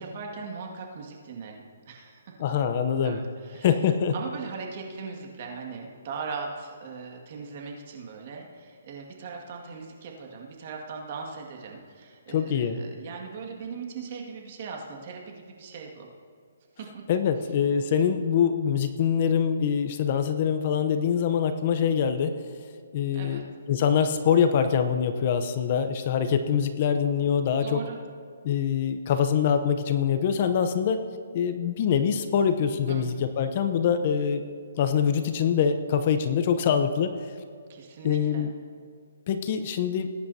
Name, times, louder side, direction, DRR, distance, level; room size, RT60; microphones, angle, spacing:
voice 1, 0.0-2.3 3.0-3.7 4.1-16.1 16.8-17.0 23.1-23.4 27.6-28.0 32.9-33.1 37.7-38.5, right 5 dB, 45° right, 1 dB, 2.0 m, -39 dB
voice 2, 2.4-3.2 3.6-4.1 12.3-12.8 17.1-22.4 22.9-23.4 23.7-27.8 28.4-31.0 31.3-34.4 34.8-37.1 38.0-38.5 39.3-40.1, left 7 dB, 40° left, 8 dB, 0.8 m, -24 dB
20.0 x 10.5 x 2.8 m, 2.1 s
hypercardioid pair, 160°, 0 cm